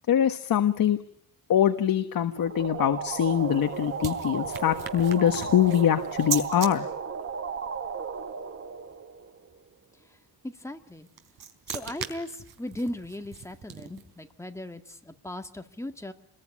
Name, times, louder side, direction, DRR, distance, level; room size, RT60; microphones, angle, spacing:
voice 1, 0.1-1.0 1.5-6.9, left 10 dB, 60° left, 8 dB, 1.4 m, -23 dB
sound 1, 2.4-9.7, right 6 dB, 35° right, 1.9 m, -35 dB
sound 2, 3.1-6.7 10.9-14.2, right 7 dB, 75° right, 3.9 m, -38 dB
voice 2, 10.4-11.1 11.7-16.1, left 1 dB, 5° left, 6 dB, 1.8 m, -37 dB
27.5 x 21.5 x 9.9 m, 0.72 s
wide cardioid pair, 165°, 38 cm